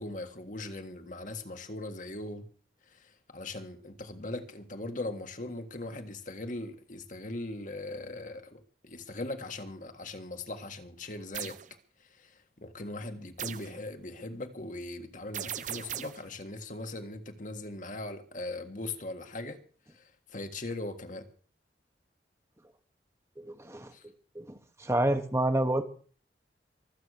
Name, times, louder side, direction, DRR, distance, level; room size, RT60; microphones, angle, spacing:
voice 1, 0.0-2.5 2.9-11.6 12.0-19.6 19.9-21.3 23.9-24.0, left 2 dB, 45° left, 1.7 m, -40 dB
sound 1, 11.3-11.7 13.4-13.8 15.3-16.3, right 9 dB, 45° right, 0.8 m, -38 dB
voice 2, 23.4-23.9 24.3-24.4 24.8-25.8, right 1 dB, 15° right, 1.3 m, -28 dB
24.0 x 8.3 x 6.5 m
head